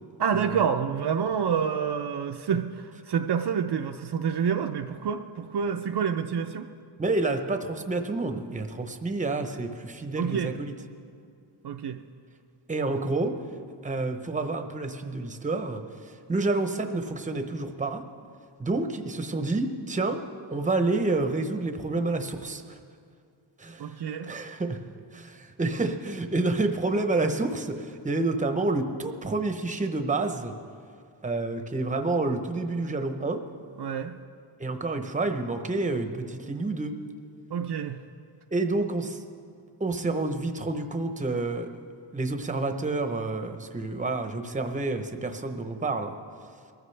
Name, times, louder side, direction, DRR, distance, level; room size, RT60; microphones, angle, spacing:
voice 1, 0.2-6.7 10.2-10.5 11.6-12.0 23.8-24.3 33.8-34.2 37.5-38.0, right 7 dB, 55° right, 5 dB, 0.6 m, -28 dB
voice 2, 7.0-10.7 12.7-13.4 13.8-15.8 16.3-18.0 18.6-20.2 20.5-22.8 23.6-23.9 24.3-24.8 25.1-30.5 31.2-33.4 34.6-36.9 38.5-39.2 39.8-41.7 42.1-46.2, right 2 dB, 15° right, 6 dB, 0.8 m, -29 dB
22.5 x 14.5 x 3.3 m, 2.3 s
wide cardioid pair, 145°, 47 cm